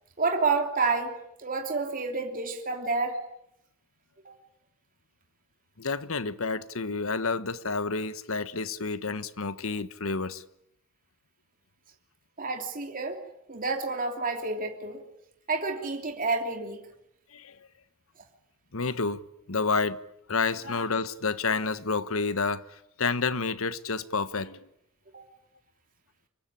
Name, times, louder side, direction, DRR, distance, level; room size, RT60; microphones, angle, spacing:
voice 1, 0.2-3.2 4.2-4.4 12.4-13.2 13.5-15.0 15.5-16.8 25.1-25.2, right 3 dB, 40° right, 3.0 m, -29 dB
voice 2, 5.8-10.4 17.3-17.6 18.7-19.2 19.5-20.0 20.3-24.7, left 4 dB, 70° left, 1.3 m, -29 dB
26.5 x 23.0 x 10.0 m
head